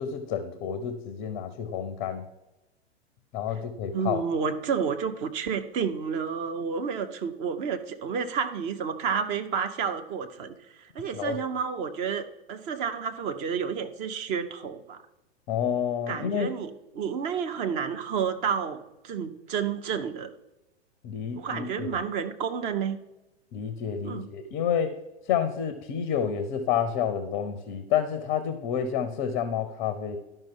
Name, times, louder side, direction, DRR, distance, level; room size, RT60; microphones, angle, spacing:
voice 1, 0.0-2.2 3.3-4.2 11.1-11.4 15.5-16.5 21.0-21.9 23.5-24.9 25.3-30.2, left 8 dB, 25° left, 10 dB, 0.6 m, -29 dB
voice 2, 3.9-15.0 16.1-20.3 21.4-23.0 24.0-24.3, right 6 dB, 20° right, 8 dB, 0.5 m, -30 dB
12.0 x 5.3 x 3.7 m, 1.0 s
figure-of-eight pair, 100°, 34 cm